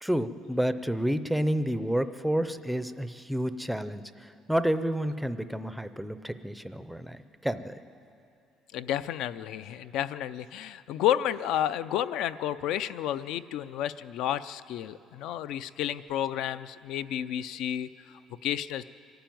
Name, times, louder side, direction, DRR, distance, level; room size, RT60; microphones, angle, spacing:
voice 1, 0.0-7.8, equal, ahead, 11 dB, 0.5 m, -30 dB
voice 2, 8.7-18.8, left 11 dB, 65° left, 14 dB, 0.5 m, -31 dB
25.5 x 11.5 x 9.2 m, 2.6 s
cardioid pair, 175°, 0 cm